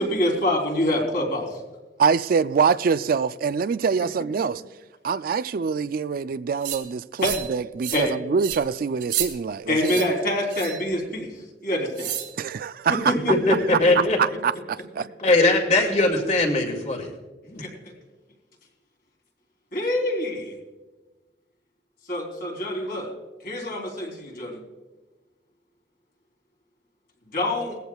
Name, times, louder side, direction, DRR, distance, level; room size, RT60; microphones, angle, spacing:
voice 1, 0.0-1.5 7.2-7.3 7.9-8.1 9.7-11.3 11.6-12.2 12.9-13.5 13.9-14.2 17.6-17.9 19.7-20.6 22.1-23.1 23.4-24.6 27.3-27.8, left 1 dB, 55° left, 3.6 m, -26 dB
voice 2, 2.0-4.6 5.0-9.9 12.3-13.1 14.0-15.1, right 6 dB, 55° right, 0.3 m, -24 dB
sound 1, 6.6-6.8 7.2-7.5 7.8-8.1 8.4-8.6 9.0-9.3 9.8-10.1 10.5-10.8 12.0-12.3, right 11 dB, 90° right, 2.2 m, -30 dB
voice 3, 13.3-14.2 15.2-17.1 17.4-17.6, left 2 dB, 40° left, 2.3 m, -20 dB
20.0 x 15.0 x 2.3 m
head